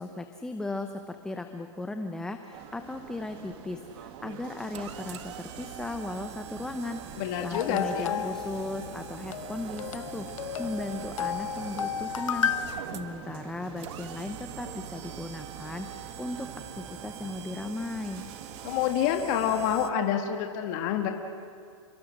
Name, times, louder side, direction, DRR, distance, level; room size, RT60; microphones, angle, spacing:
voice 1, 0.0-15.9 16.2-18.2, left 2 dB, 5° left, 6 dB, 0.8 m, -37 dB
sound 1, 2.5-19.0, right 7 dB, 30° right, 1.8 m, -46 dB
sound 2, 4.0-19.9, right 9 dB, 60° right, 1.5 m, -44 dB
voice 2, 7.2-8.2 18.6-21.1, left 9 dB, 40° left, 4 dB, 1.7 m, -27 dB
sound 3, 7.5-12.6, left 9 dB, 80° left, 1.1 m, -33 dB
29.5 x 23.0 x 6.5 m, 2.2 s
hypercardioid pair, 150°, 17 cm